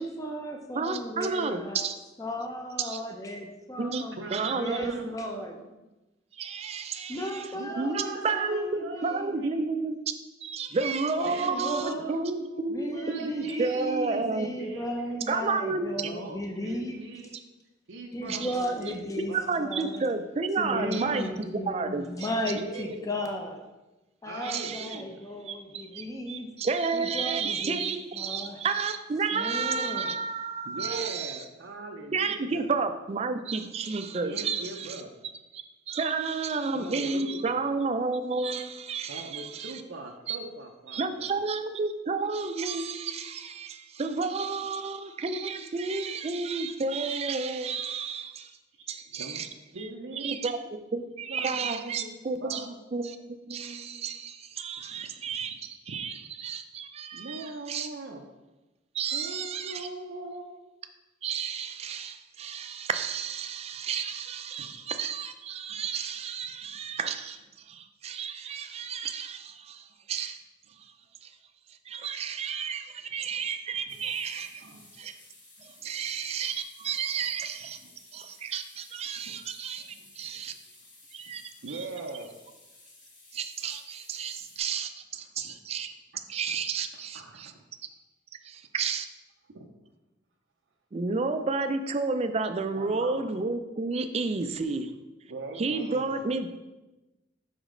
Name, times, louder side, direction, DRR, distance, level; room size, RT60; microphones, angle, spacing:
voice 1, 0.0-1.9 2.2-4.2 4.5-5.6 7.1-9.3 11.1-12.1 12.7-17.0 18.1-19.3 19.6-20.0 20.6-23.6 24.2-26.5 26.9-27.8 28.1-28.6 29.3-30.1, equal, 20° left, 2 dB, 0.6 m, -35 dB
voice 2, 0.7-1.9 2.8-3.0 3.8-4.0 4.3-5.1 6.3-7.4 7.8-10.0 10.4-12.9 13.2-14.5 15.3-15.9 18.3-18.5 19.2-21.3 21.6-22.3 24.4-25.0 25.4-31.4 32.1-35.0 35.5-39.7 40.3-40.4 40.9-48.5 48.9-49.5 49.8-49.9 50.2-53.2 53.4-57.9 58.9-59.9 61.2-70.4 70.8-70.9 71.2-71.3 71.9-74.6 75.0-75.1 75.6-77.8 78.1-80.5 81.1-81.4 81.7-81.9 83.3-85.9 86.3-87.5 88.4-89.1 90.9-94.9 95.6-96.5, right 4 dB, 35° right, 8 dB, 0.4 m, -31 dB
voice 3, 4.2-5.5 7.5-9.7 11.2-15.1 15.9-17.5 17.9-18.9 19.3-19.6 20.7-21.3 22.5-23.1 24.3-25.2 27.3-27.4 30.6-32.7 34.2-35.1 36.7-37.6 39.1-41.3 49.1-49.4 49.7-50.5 51.3-52.1 52.4-52.7 54.8-55.6 55.9-56.0 57.1-58.2 59.1-60.5 64.6-64.7 73.9-74.1 74.6-74.9 75.9-76.0 77.8-77.9 79.2-79.4 79.8-80.5 81.6-82.3 85.4-85.5 86.5-86.6 86.9-87.6 89.5-89.7 92.8-93.3 95.3-96.2, right 2 dB, 80° right, 0 dB, 0.6 m, -41 dB
sound 1, 73.9-84.6, left 2 dB, 45° left, 1.8 m, -55 dB
5.3 x 5.0 x 3.7 m, 1.1 s
head